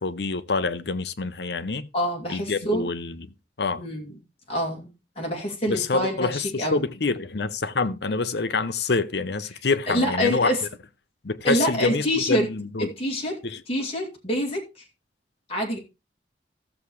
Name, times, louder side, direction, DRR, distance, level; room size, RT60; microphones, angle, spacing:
voice 1, 0.0-1.9 2.3-3.3 3.6-3.8 5.7-10.5 11.2-12.9 13.4-13.6, left 3 dB, 70° left, 0.8 m, -26 dB
voice 2, 1.9-2.9 3.8-4.1 4.5-4.9 5.2-6.8 9.9-10.6 11.4-12.5 13.0-13.4 13.7-14.8 15.5-15.8, equal, 35° left, 2.4 m, -26 dB
15.0 x 7.1 x 3.1 m
head